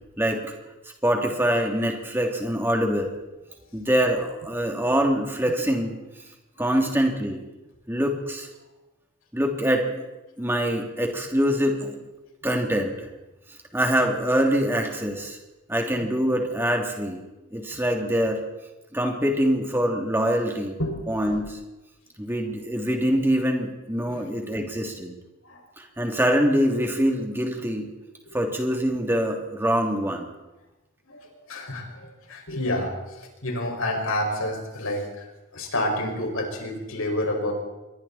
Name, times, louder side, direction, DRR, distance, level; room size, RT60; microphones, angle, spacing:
voice 1, 0.2-0.5 1.0-3.1 3.7-6.0 6.6-7.4 7.9-8.5 9.3-10.0 10.4-12.0 12.4-13.1 13.7-15.4 15.7-17.2 17.5-18.4 18.9-20.8 21.1-21.6 22.2-25.1 25.8-27.9 28.3-30.3, equal, 10° right, 1 dB, 3.1 m, -24 dB
voice 2, 31.1-35.1 35.5-37.5, left 1 dB, 85° left, 1 dB, 6.1 m, -29 dB
27.0 x 23.5 x 4.4 m, 1.0 s
head